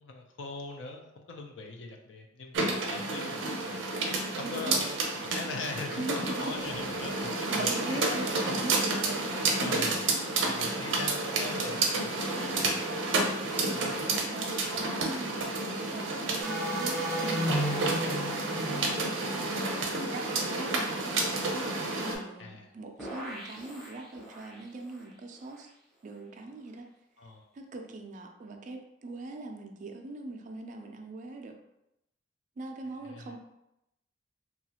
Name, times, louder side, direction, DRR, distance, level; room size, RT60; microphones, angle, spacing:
voice 1, 0.0-3.9 4.4-8.1 9.4-10.0 10.4-14.1 22.4-22.7 27.2-27.5 33.0-33.4, left 3 dB, 75° left, 2 dB, 0.4 m, -42 dB
sound 1, 2.5-22.1, right 2 dB, 85° right, 0.5 m, -30 dB
voice 2, 4.4-4.9 6.0-6.2 7.5-9.3 14.3-21.2 21.5-25.7 26.0-26.9 27.5-31.6 32.6-33.4, right 2 dB, 40° right, 4 dB, 0.3 m, -42 dB
sound 2, 16.4-20.3 23.0-24.5, equal, ahead, 0.6 m, -35 dB
2.8 x 2.4 x 2.8 m, 0.86 s
head